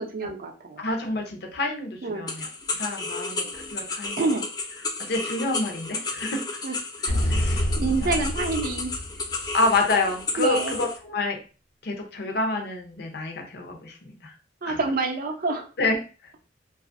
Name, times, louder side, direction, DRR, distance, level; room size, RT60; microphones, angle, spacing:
voice 1, 0.0-0.8 2.0-2.2 3.4-3.5 4.2-4.4 6.6-6.7 7.0-7.1 7.7-8.9 10.4-10.8 14.6-15.7, right 3 dB, 50° right, 5 dB, 0.5 m, -27 dB
voice 2, 0.8-2.5 2.8-4.2 5.0-6.4 7.2-7.7 8.0-8.2 9.5-11.4 11.8-14.3 14.6-14.8 15.8-16.0, left 2 dB, 60° left, 3 dB, 0.6 m, -28 dB
sound 1, 2.3-11.0, left 3 dB, 20° left, 0.3 m, -33 dB
sound 2, 7.1-9.8, equal, 85° left, 1.0 m, -27 dB
2.5 x 2.3 x 2.4 m, 0.35 s
head